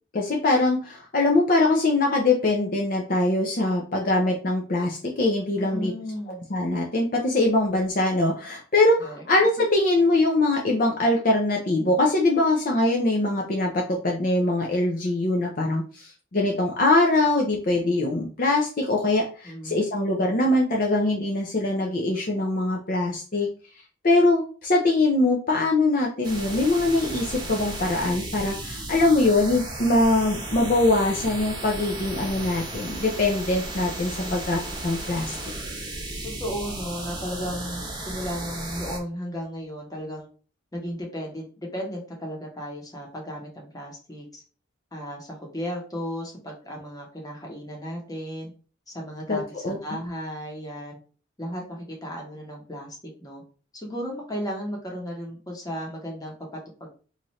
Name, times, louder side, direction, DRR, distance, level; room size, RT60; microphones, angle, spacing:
voice 1, 0.1-5.9 6.5-23.5 24.0-35.3 49.3-49.4 49.6-49.8, left 2 dB, 45° left, 0 dB, 0.5 m, -22 dB
voice 2, 5.6-6.4 9.0-9.2 19.4-19.8 34.1-34.3 36.2-40.3 40.7-44.4 44.9-48.5 48.9-51.0 51.4-53.4 53.7-56.9, equal, 20° left, -1 dB, 1.0 m, -35 dB
sound 1, 26.2-39.0, right 2 dB, 20° right, 0.8 m, -35 dB
3.1 x 2.5 x 4.1 m, 0.38 s
head